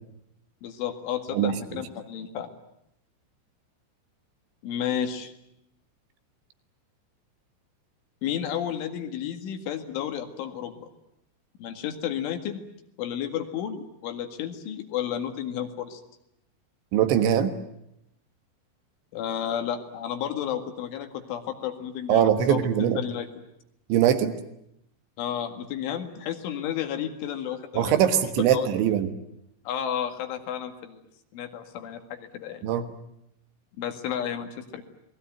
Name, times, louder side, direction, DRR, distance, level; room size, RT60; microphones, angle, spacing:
voice 1, 0.6-2.5 4.6-5.3 8.2-10.9 11.6-12.7 13.0-16.0 19.1-22.6 23.0-23.3 25.2-28.7 29.7-31.0 31.3-32.6 33.8-34.8, left 9 dB, 75° left, 6 dB, 4.3 m, -32 dB
voice 2, 1.3-1.8 16.9-17.5 22.1-23.0 23.9-24.3 27.8-29.1 32.6-32.9, right 10 dB, 70° right, 9 dB, 3.6 m, -22 dB
28.5 x 20.5 x 9.2 m, 0.80 s
omnidirectional pair, 5.8 m